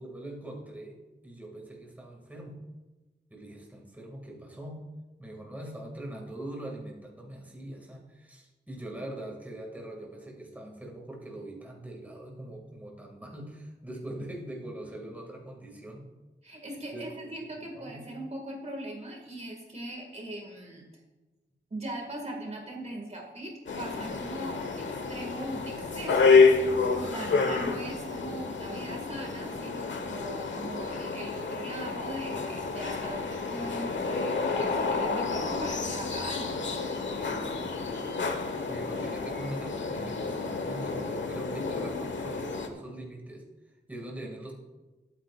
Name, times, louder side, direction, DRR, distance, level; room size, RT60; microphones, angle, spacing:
voice 1, 0.0-2.6 3.3-4.8 5.2-16.1 16.9-18.0 25.7-25.8 26.8-27.4 33.7-33.9 37.2-38.1 38.7-43.4 43.9-44.5, right 1 dB, 10° right, -1 dB, 2.2 m, -42 dB
voice 2, 16.4-20.9 21.7-26.3 27.0-36.7, right 1 dB, 35° right, 1 dB, 2.0 m, -40 dB
sound 1, 23.7-42.7, left 4 dB, 80° left, 1.3 m, -29 dB
21.5 x 8.8 x 2.5 m, 1.2 s
wide cardioid pair, 125°, 19 cm